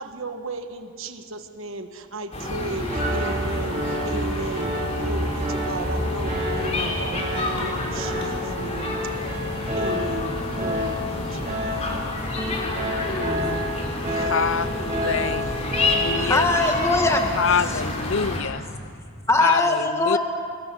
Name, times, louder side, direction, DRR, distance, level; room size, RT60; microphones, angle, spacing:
voice 1, 0.0-9.3 9.7-12.1, right 2 dB, 65° right, 7 dB, 1.3 m, -35 dB
sound 1, 2.3-18.4, left 1 dB, 30° left, 3.4 m, -29 dB
Piano, 2.9-16.6, left 1 dB, 30° right, 7.6 m, -29 dB
voice 2, 14.1-15.5 15.9-16.5 17.4-18.7 19.4-19.6 20.1-20.2, left 6 dB, 55° left, 17 dB, 0.5 m, -25 dB
voice 3, 16.0-17.3 17.6-17.8 19.3-20.2, left 2 dB, 15° left, 3 dB, 1.8 m, -21 dB
26.0 x 21.5 x 6.9 m, 2.2 s
head